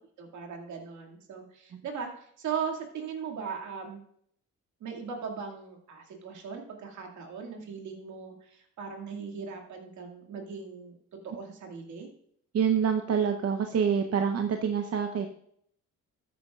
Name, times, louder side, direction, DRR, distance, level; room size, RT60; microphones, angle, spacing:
voice 1, 0.2-4.0 4.8-11.0 11.2-12.1, right 6 dB, 75° right, 2 dB, 2.2 m, -38 dB
voice 2, 12.5-15.3, right 7 dB, 55° right, 5 dB, 0.9 m, -26 dB
13.0 x 9.3 x 2.4 m, 0.67 s
cardioid pair, 90°, 30 cm